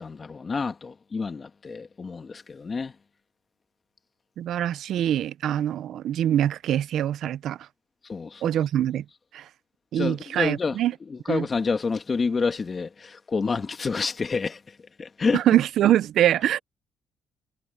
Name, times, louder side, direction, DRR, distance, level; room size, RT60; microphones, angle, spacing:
voice 1, 0.0-2.9 8.1-8.6 9.9-10.8 11.1-15.4, left 4 dB, 35° left, 1.5 m, -28 dB
voice 2, 4.4-7.6 8.4-9.0 9.3-9.4 9.9-10.9 11.3-11.5 15.3-16.6, right 11 dB, 75° right, 0.5 m, -24 dB
cardioid pair, 90°, 0 cm